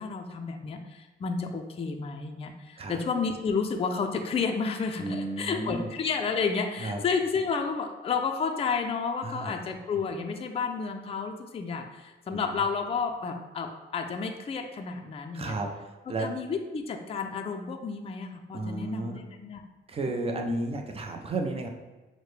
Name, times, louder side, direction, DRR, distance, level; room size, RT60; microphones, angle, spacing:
voice 1, 0.0-15.6 16.2-19.6 20.1-20.6, left 5 dB, 30° left, 4 dB, 0.4 m, -31 dB
voice 2, 5.0-5.9 6.8-7.0 9.2-9.6 12.3-12.4 15.3-16.3 18.5-19.2 19.9-21.7, right 2 dB, 30° right, 3 dB, 0.6 m, -33 dB
6.2 x 2.1 x 3.3 m, 1.2 s
cardioid pair, 90°, 20 cm